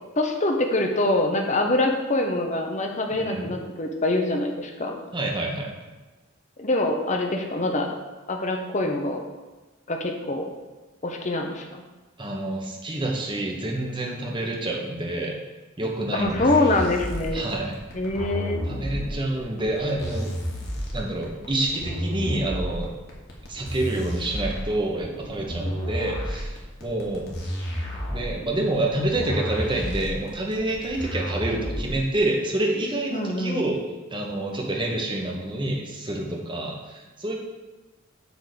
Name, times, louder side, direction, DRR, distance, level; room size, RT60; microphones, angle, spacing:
voice 1, 0.2-5.0 6.6-7.9 8.3-9.3 9.9-10.5 11.0-11.8 16.1-17.4 17.9-18.6 33.1-33.6, left 2 dB, 35° left, 3 dB, 1.0 m, -24 dB
voice 2, 3.1-3.5 5.1-5.9 12.2-15.4 15.8-16.7 17.3-17.8 18.7-20.3 20.9-22.9 23.5-27.3 28.1-33.8 34.1-37.3, right 1 dB, 25° right, -1 dB, 1.2 m, -28 dB
sound 1, 16.2-32.2, equal, 55° left, 1.7 m, -31 dB
8.1 x 3.9 x 6.7 m, 1.2 s
head